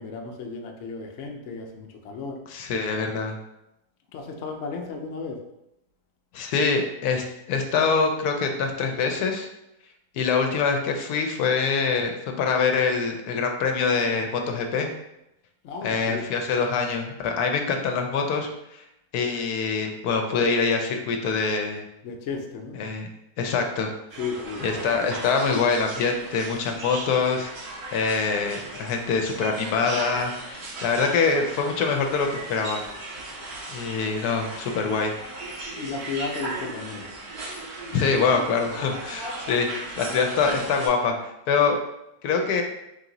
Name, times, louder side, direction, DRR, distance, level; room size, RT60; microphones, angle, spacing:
voice 1, 0.0-2.4 4.1-5.4 15.6-16.3 22.0-22.8 24.2-24.7 35.7-37.1, left 4 dB, 65° left, 2 dB, 0.8 m, -34 dB
voice 2, 2.5-3.4 6.3-9.5 10.1-14.9 15.8-18.8 19.1-21.8 22.8-23.1 23.4-23.9 24.6-27.5 27.9-32.8 33.7-35.1 37.9-41.8 42.2-42.6, left 5 dB, 80° left, 4 dB, 1.1 m, -24 dB
sound 1, 24.1-40.9, right 2 dB, 75° right, 1.5 m, -37 dB
3.5 x 2.9 x 3.8 m, 0.86 s
omnidirectional pair, 1.6 m